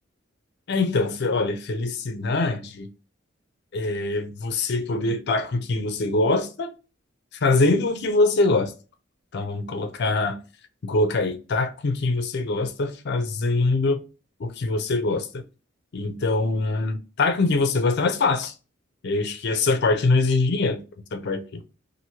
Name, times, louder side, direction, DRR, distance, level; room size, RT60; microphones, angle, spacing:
voice 1, 0.7-2.9 3.7-6.7 7.4-8.7 9.3-10.4 10.8-14.0 14.4-15.4 15.9-18.5 19.0-20.8 21.1-21.6, left 3 dB, 55° left, 0.5 m, -23 dB
2.8 x 2.6 x 2.7 m
head